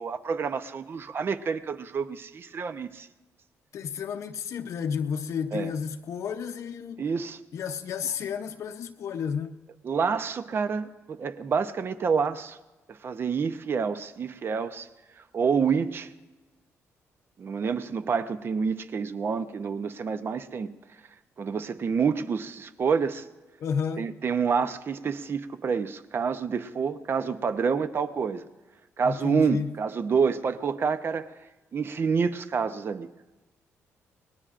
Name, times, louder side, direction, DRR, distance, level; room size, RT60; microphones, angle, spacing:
voice 1, 0.0-3.1 5.5-5.7 7.0-7.4 9.8-12.6 12.9-14.9 15.3-16.1 17.4-20.7 21.4-23.2 24.0-28.5 29.0-31.3 31.7-33.1, right 6 dB, 45° right, 0.7 m, -28 dB
voice 2, 3.7-7.1 7.5-9.6 23.6-24.1 29.0-29.7, left 7 dB, 70° left, 0.7 m, -32 dB
27.0 x 19.5 x 2.5 m
cardioid pair, 95°, 5 cm